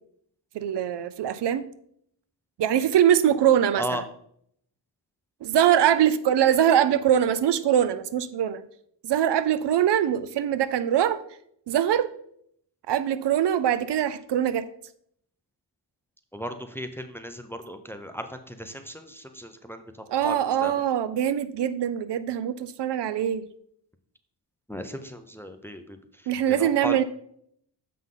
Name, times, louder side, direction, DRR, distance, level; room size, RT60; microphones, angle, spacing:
voice 1, 0.5-1.7 2.6-4.0 5.4-8.6 9.0-11.2 11.7-12.1 12.9-14.6 20.1-23.5 26.3-27.0, right 10 dB, 70° right, 14 dB, 0.5 m, -23 dB
voice 2, 6.5-6.9 16.3-20.7 24.7-26.0 26.5-27.0, equal, 5° left, 8 dB, 0.5 m, -36 dB
7.5 x 5.5 x 3.8 m, 0.68 s
wide cardioid pair, 115°, 44 cm